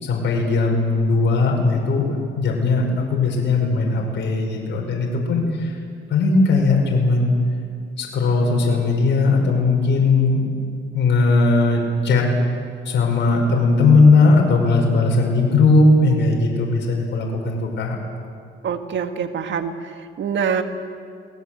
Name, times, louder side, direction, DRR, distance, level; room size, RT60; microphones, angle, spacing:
voice 1, 0.0-5.8 6.1-7.3 8.0-10.4 10.9-12.3 12.9-18.0, left 3 dB, 65° left, -1 dB, 5.8 m, -18 dB
voice 2, 18.6-20.6, right 7 dB, 65° right, 7 dB, 1.9 m, -25 dB
27.5 x 19.5 x 8.0 m, 2.2 s
cardioid pair, 90°, 20 cm